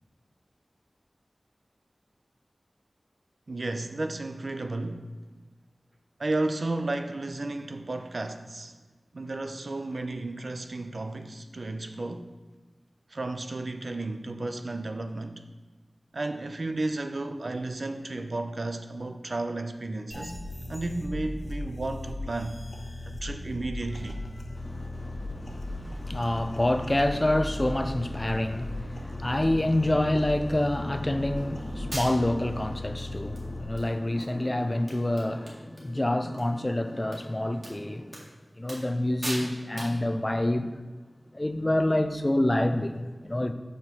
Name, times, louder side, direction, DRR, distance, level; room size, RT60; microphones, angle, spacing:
voice 1, 3.5-5.1 6.2-8.7 9.1-12.3 13.1-15.4 16.1-20.4 20.7-22.6 23.1-24.2, right 2 dB, 65° right, 0.5 m, -33 dB
sound 1, 20.1-33.6, left 1 dB, 45° left, 1.1 m, -37 dB
voice 2, 24.6-38.2 38.6-40.7 41.3-43.5, left 1 dB, 30° left, 0.5 m, -27 dB
sound 2, 31.4-31.5 31.9-32.4 33.0-33.1 33.4-33.9 34.2-34.3 34.6-34.7 34.9-35.9 36.2-36.4 37.1-37.2 37.6-37.7 38.1-38.3 38.7-39.0 39.2-39.5 39.8-40.0, right 1 dB, 40° right, 1.9 m, -38 dB
5.7 x 4.8 x 5.7 m
wide cardioid pair, 50°, 0 cm